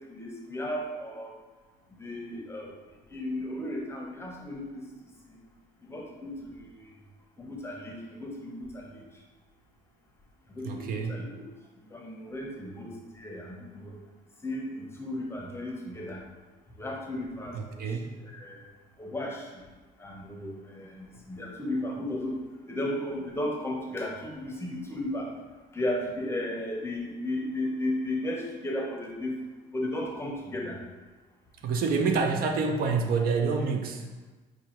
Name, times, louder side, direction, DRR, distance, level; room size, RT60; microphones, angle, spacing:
voice 1, 0.0-1.3 2.0-2.7 3.1-4.8 5.3-5.4 5.8-6.9 7.4-9.0 10.5-11.4 11.9-14.0 14.4-16.2 16.8-18.7 19.0-19.5 20.0-22.4 22.7-25.3 25.7-29.4 29.7-30.8, left 1 dB, 15° left, -1 dB, 0.7 m, -35 dB
voice 2, 10.6-11.1 17.5-18.1 31.6-34.1, right 4 dB, 60° right, 3 dB, 0.5 m, -27 dB
4.7 x 2.6 x 3.0 m, 1.2 s
cardioid pair, 110°, 17 cm